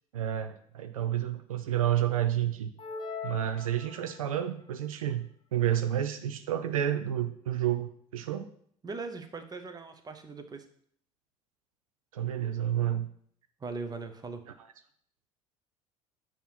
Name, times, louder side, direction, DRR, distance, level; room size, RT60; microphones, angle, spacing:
voice 1, 0.1-2.7 3.2-8.5 12.1-13.1 14.5-14.6, right 11 dB, 80° right, 8 dB, 0.4 m, -30 dB
sound 1, 2.8-4.5, left 5 dB, 30° left, 0.8 m, -41 dB
voice 2, 8.8-10.7 13.6-14.4, right 4 dB, 20° right, 8 dB, 0.8 m, -39 dB
7.1 x 2.9 x 5.6 m, 0.63 s
hypercardioid pair, 65°, 17 cm